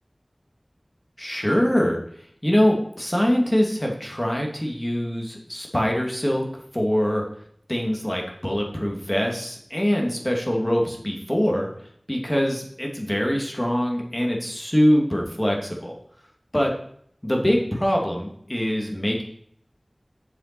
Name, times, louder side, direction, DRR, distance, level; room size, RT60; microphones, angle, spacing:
voice 1, 1.2-2.0 2.4-6.4 6.7-7.2 7.7-11.7 12.1-15.9 16.5-16.7 17.2-19.2, equal, 20° left, 0 dB, 2.6 m, -23 dB
7.5 x 7.0 x 6.2 m, 0.64 s
wide cardioid pair, 45°, 0 cm